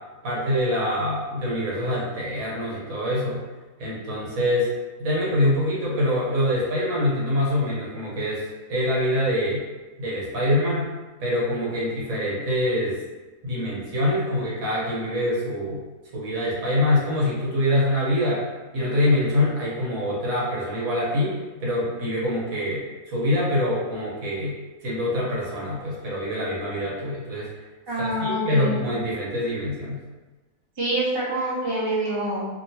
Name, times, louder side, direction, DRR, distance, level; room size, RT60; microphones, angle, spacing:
voice 1, 0.2-3.4 3.8-4.7 5.0-8.4 8.7-9.6 10.0-10.9 11.2-13.0 13.4-15.8 16.1-18.4 18.7-22.8 23.1-24.5 24.8-27.5 28.0-30.0, left 1 dB, 60° right, -6 dB, 1.2 m, -25 dB
voice 2, 27.9-28.7 30.8-32.4, right 1 dB, 25° right, -9 dB, 0.5 m, -26 dB
2.9 x 2.8 x 2.7 m, 1.2 s
omnidirectional pair, 1.8 m